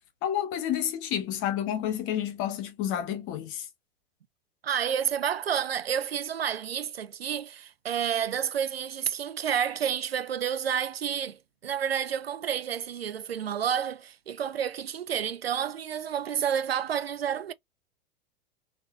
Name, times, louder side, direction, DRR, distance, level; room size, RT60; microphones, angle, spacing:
voice 1, 0.2-3.6, left 10 dB, 45° left, 1.1 m, -30 dB
voice 2, 4.6-17.5, right 8 dB, 85° right, 0.5 m, -30 dB
3.2 x 2.8 x 3.2 m
figure-of-eight pair, 90°, 29 cm